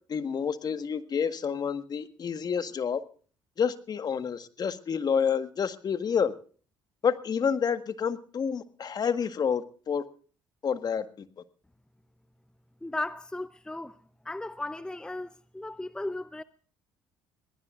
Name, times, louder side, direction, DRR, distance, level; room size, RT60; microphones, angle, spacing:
voice 1, 0.1-3.0 3.6-6.3 7.0-10.0 10.6-11.0, left 7 dB, 45° left, 1.6 m, -29 dB
voice 2, 12.8-14.0 14.2-16.4, left 2 dB, 10° left, 0.7 m, -36 dB
22.5 x 19.0 x 2.5 m
hypercardioid pair, 60°, 9 cm